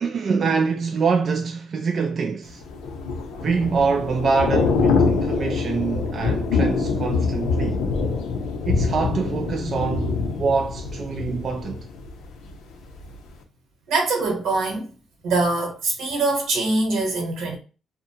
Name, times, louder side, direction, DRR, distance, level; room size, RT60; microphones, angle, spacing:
voice 1, 0.0-2.6 3.4-7.8 8.7-11.9, right 5 dB, 50° right, 0.3 m, -25 dB
Thunder / Rain, 2.6-12.6 12.9-13.2, left 4 dB, 90° left, 0.5 m, -24 dB
voice 2, 13.9-14.9 15.2-17.6, right 3 dB, 85° right, 1.1 m, -23 dB
2.6 x 2.1 x 2.7 m
cardioid pair, 90°, 0 cm